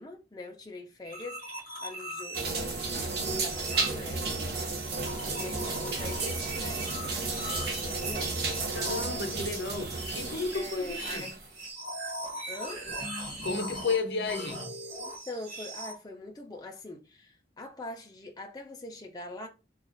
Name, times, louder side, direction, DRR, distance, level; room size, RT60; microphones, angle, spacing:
voice 1, 0.0-4.5 5.3-8.5 10.5-11.3 12.5-12.9 15.0-19.5, left 2 dB, 20° left, 0.5 m, -43 dB
sound 1, 1.0-15.9, right 1 dB, 35° right, 1.5 m, -40 dB
sound 2, 2.3-11.5, right 3 dB, 65° right, 0.8 m, -33 dB
voice 2, 8.7-11.4 13.4-14.8, left 3 dB, 75° left, 0.7 m, -33 dB
3.1 x 2.4 x 3.8 m
head